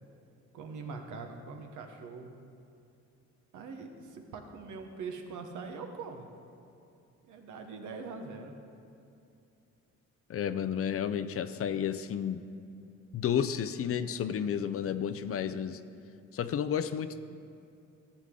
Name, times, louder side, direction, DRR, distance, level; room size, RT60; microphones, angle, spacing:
voice 1, 0.5-2.3 3.5-6.3 7.2-8.5, right 4 dB, 75° right, 4 dB, 1.2 m, -42 dB
voice 2, 10.3-12.4 13.1-15.8 16.3-17.2, left 8 dB, 50° left, 12 dB, 0.5 m, -31 dB
13.0 x 8.1 x 3.8 m, 2.7 s
cardioid pair, 90°, 30 cm